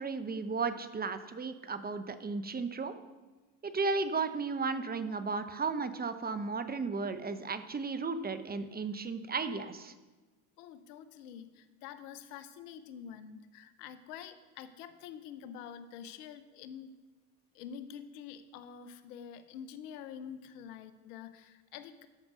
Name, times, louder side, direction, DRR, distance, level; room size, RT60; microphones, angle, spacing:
voice 1, 0.0-2.9 3.6-9.9, right 4 dB, 20° right, 11 dB, 0.8 m, -34 dB
voice 2, 10.6-16.9 17.5-22.1, left 8 dB, 85° left, 12 dB, 0.9 m, -47 dB
13.0 x 5.2 x 6.2 m, 1.2 s
supercardioid pair, 80°, 45 cm